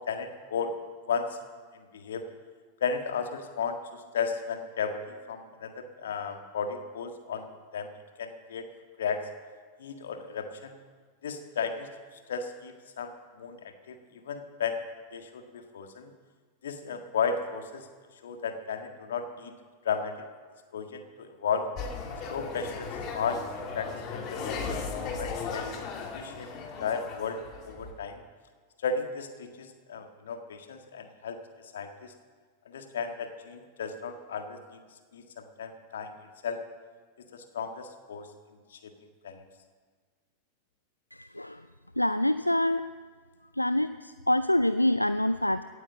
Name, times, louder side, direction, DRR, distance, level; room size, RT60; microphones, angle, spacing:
voice 1, 0.1-0.7 1.1-1.3 1.7-2.2 2.8-7.5 7.7-7.9 8.2-8.6 9.0-9.2 9.8-10.8 11.2-11.9 12.3-13.1 13.4-14.8 15.1-16.1 16.6-17.9 18.2-19.5 19.8-20.2 20.7-21.7 22.3-23.4 23.7-25.7 26.1-26.5 26.8-27.4 27.6-28.2 28.8-31.4 31.7-32.1 32.6-34.8 35.1-36.1 36.4-36.6 37.3-38.3 38.7-38.9 39.2-39.4, left 6 dB, 65° left, 6 dB, 1.7 m, -34 dB
sound 1, 21.8-27.9, left 5 dB, 35° left, 2.4 m, -36 dB
voice 2, 41.1-41.6 42.0-42.9 43.6-45.6, left 1 dB, 85° left, 13 dB, 0.4 m, -26 dB
17.5 x 9.2 x 7.4 m, 1.5 s
figure-of-eight pair, 90°, 0 cm